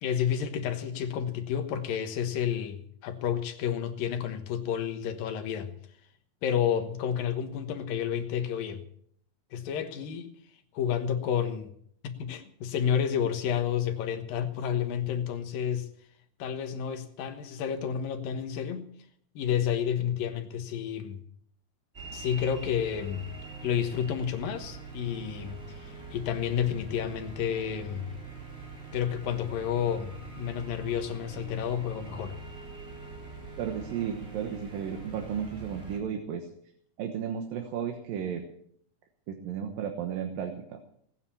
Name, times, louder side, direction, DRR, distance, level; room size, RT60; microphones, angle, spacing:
voice 1, 0.0-5.8 6.4-8.8 9.5-10.3 10.7-11.7 12.0-15.9 16.4-18.9 19.4-21.2 22.1-23.3 23.6-28.1 28.9-32.4, left 8 dB, 80° left, 7 dB, 3.1 m, -30 dB
sound 1, 21.9-36.0, right 4 dB, 20° right, 3.4 m, -43 dB
voice 2, 33.6-36.5 37.0-38.5 39.3-40.8, right 8 dB, 80° right, 4 dB, 3.0 m, -34 dB
18.5 x 9.5 x 7.1 m, 0.66 s
omnidirectional pair, 4.0 m